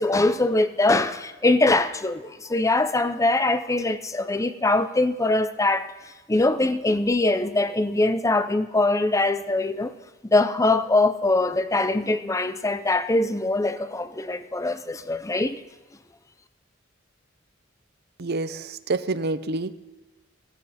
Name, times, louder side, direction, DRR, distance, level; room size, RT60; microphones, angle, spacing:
voice 1, 0.0-9.9 10.2-15.6, left 2 dB, 15° left, 0.6 m, -22 dB
voice 2, 18.2-19.7, right 3 dB, 55° right, 0.7 m, -27 dB
17.0 x 14.0 x 4.3 m
head